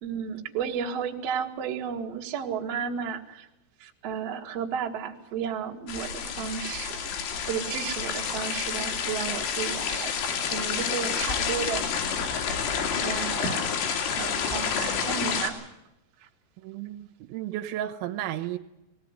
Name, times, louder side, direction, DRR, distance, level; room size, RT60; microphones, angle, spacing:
voice 1, 0.0-3.5 3.8-7.0 7.4-10.1 10.4-11.8 13.0-13.7 14.2-15.6 16.2-16.3, right 7 dB, 60° right, 1.7 m, -33 dB
sound 1, 5.9-15.5, left 6 dB, 85° left, 4.8 m, -29 dB
voice 2, 16.6-18.6, right 12 dB, 80° right, 3.3 m, -33 dB
20.0 x 16.5 x 9.6 m
omnidirectional pair, 5.5 m